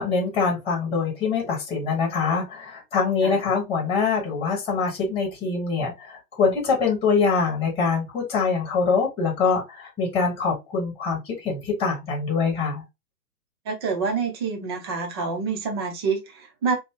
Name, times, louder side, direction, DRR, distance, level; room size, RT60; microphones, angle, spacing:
voice 1, 0.0-12.8, left 5 dB, 10° left, 1.1 m, -24 dB
voice 2, 13.7-16.8, right 5 dB, 20° right, 0.4 m, -27 dB
2.6 x 2.0 x 3.6 m
hypercardioid pair, 130°, 46 cm